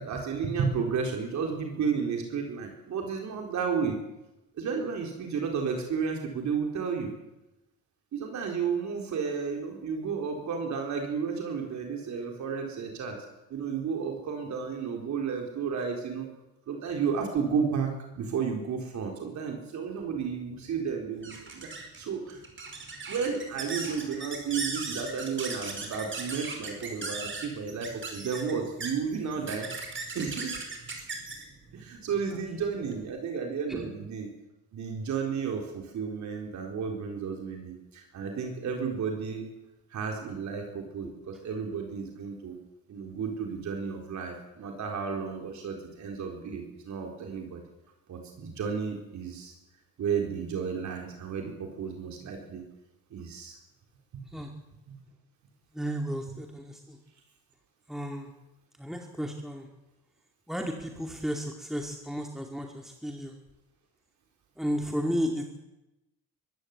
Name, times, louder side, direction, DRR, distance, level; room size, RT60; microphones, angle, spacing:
voice 1, 0.0-4.0 4.6-7.1 8.1-13.2 13.5-16.3 16.7-17.9 18.2-22.4 23.1-29.7 30.1-30.6 31.7-34.3 34.7-39.5 39.9-42.6 42.9-47.6 48.1-49.5 50.0-52.6 53.1-53.5 54.1-54.2 54.9-55.0, right 6 dB, 70° right, 2 dB, 4.1 m, -32 dB
sound 1, 20.1-33.0, right 3 dB, 40° right, 5.1 m, -39 dB
voice 2, 55.7-57.0 57.9-58.3 58.8-59.7 60.5-63.3 64.6-65.6, equal, ahead, 2 dB, 2.4 m, -33 dB
23.0 x 13.5 x 8.5 m, 0.95 s
cardioid pair, 90°, 30 cm